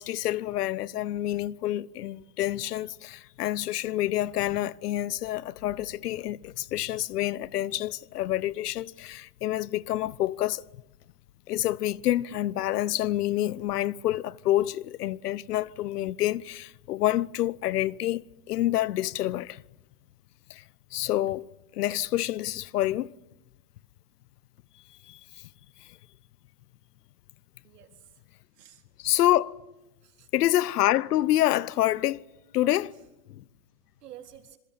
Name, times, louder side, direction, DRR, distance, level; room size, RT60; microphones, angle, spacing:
voice 1, 0.0-10.6 11.5-19.6 20.5-20.6 20.9-21.5 21.7-23.1 25.1-25.2 29.0-29.6 30.3-32.2 32.5-32.9 33.3-33.4, left 14 dB, 85° left, 1.0 m, -27 dB
voice 2, 27.6-28.2 28.5-28.8 30.0-30.3 32.9-33.0 33.6-34.6, right 11 dB, 85° right, 4.1 m, -51 dB
26.5 x 22.0 x 8.7 m
supercardioid pair, 155°, 46 cm